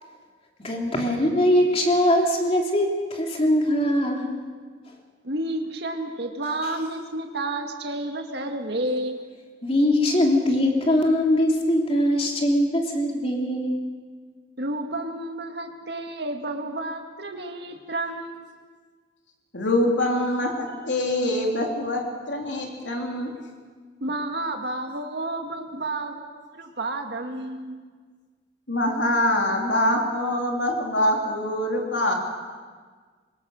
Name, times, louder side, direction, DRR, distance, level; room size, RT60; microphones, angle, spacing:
voice 1, 0.6-4.4 9.6-13.8, left 1 dB, 35° left, 0 dB, 3.1 m, -21 dB
voice 2, 5.2-9.2 14.6-18.4 24.0-27.8, right 2 dB, 60° right, 4 dB, 2.1 m, -31 dB
voice 3, 19.5-23.3 28.7-32.1, left 1 dB, 75° left, 1 dB, 3.4 m, -24 dB
23.5 x 20.5 x 6.5 m, 1.5 s
head